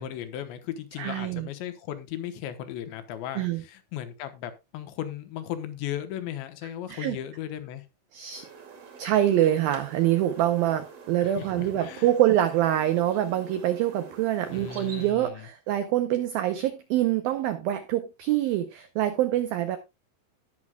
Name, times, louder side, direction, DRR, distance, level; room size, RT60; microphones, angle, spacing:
voice 1, 0.0-7.9 11.2-12.1 14.5-15.5, left 11 dB, 80° left, 3.2 m, -36 dB
voice 2, 1.0-1.5 3.4-3.6 6.9-7.2 8.1-8.5 9.0-19.8, right 12 dB, 85° right, 2.1 m, -25 dB
sound 1, 8.3-15.1, right 5 dB, 45° right, 2.3 m, -47 dB
18.5 x 6.3 x 2.3 m
omnidirectional pair, 5.3 m